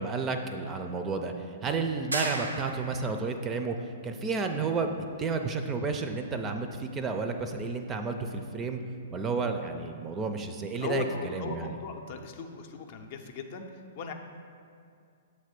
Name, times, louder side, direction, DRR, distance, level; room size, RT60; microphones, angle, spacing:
voice 1, 0.0-3.8 4.0-8.8 9.1-11.8, right 4 dB, 20° right, 6 dB, 0.4 m, -31 dB
sound 1, 2.1-3.2, right 2 dB, 90° right, 0.5 m, -34 dB
voice 2, 10.8-14.1, left 6 dB, 50° left, 5 dB, 0.5 m, -38 dB
7.5 x 3.3 x 5.1 m, 2.3 s
figure-of-eight pair, 115°, 0 cm